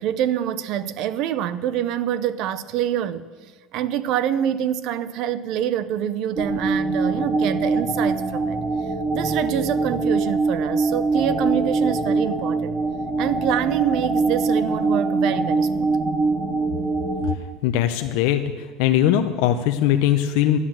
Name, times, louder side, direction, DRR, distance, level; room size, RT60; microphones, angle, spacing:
voice 1, 0.0-3.3 3.7-8.6 9.1-12.8 13.2-15.9, right 10 dB, 50° right, 0.7 m, -26 dB
sound 1, 6.4-17.3, right 3 dB, 25° right, 1.1 m, -23 dB
voice 2, 17.6-18.4 18.8-20.6, left 11 dB, 70° left, 0.7 m, -20 dB
13.0 x 9.7 x 7.5 m
cardioid pair, 170°, 0 cm